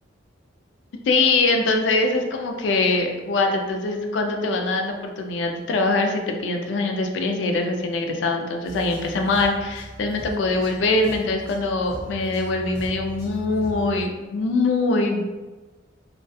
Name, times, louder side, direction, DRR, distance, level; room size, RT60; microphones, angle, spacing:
voice 1, 1.1-15.3, left 3 dB, 70° left, 3 dB, 0.4 m, -23 dB
sound 1, 8.6-14.0, right 1 dB, 55° left, 0.8 m, -38 dB
2.3 x 2.2 x 2.6 m, 1.2 s
head